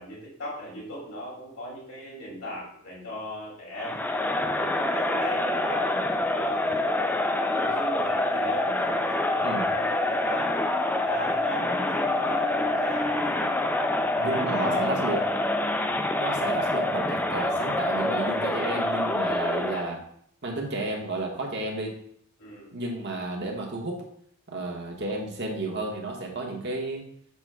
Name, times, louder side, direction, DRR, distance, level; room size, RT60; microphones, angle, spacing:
voice 1, 0.0-4.0 4.5-10.6 10.9-13.6 14.2-15.0 22.4-22.7, left 1 dB, 85° left, -4 dB, 2.5 m, -38 dB
Crowd, 3.8-19.9, left 1 dB, 10° left, 0.4 m, -26 dB
voice 2, 14.2-15.2 16.2-20.0 20.4-21.9 22.7-24.0 24.5-27.0, right 2 dB, 55° right, 0 dB, 1.3 m, -32 dB
6.8 x 6.2 x 2.2 m, 0.67 s
head